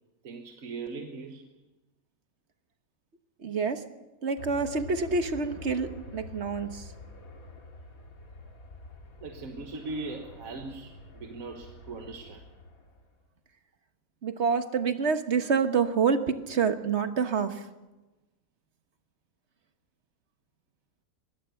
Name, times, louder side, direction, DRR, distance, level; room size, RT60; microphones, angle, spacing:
voice 1, 0.2-1.5 9.2-12.4, right 3 dB, 70° right, 4 dB, 1.7 m, -39 dB
voice 2, 3.4-3.8 4.2-6.8 14.2-17.6, right 5 dB, 50° right, 8 dB, 1.5 m, -27 dB
sound 1, 4.4-13.1, left 2 dB, 70° left, 2.7 m, -47 dB
22.5 x 17.0 x 7.0 m, 1.1 s
omnidirectional pair, 1.5 m